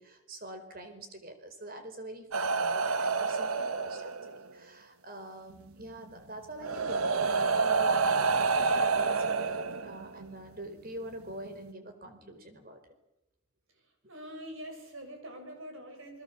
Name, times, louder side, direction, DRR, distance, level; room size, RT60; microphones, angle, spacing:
voice 1, 0.0-12.8, right 1 dB, 40° right, 8 dB, 4.5 m, -45 dB
sound 1, 2.3-4.5 5.8-5.9 6.6-10.2 11.3-11.5, right 4 dB, 85° right, 1.2 m, -28 dB
voice 2, 13.7-16.2, equal, 70° right, 5 dB, 6.8 m, -45 dB
29.0 x 20.5 x 7.4 m, 0.93 s
head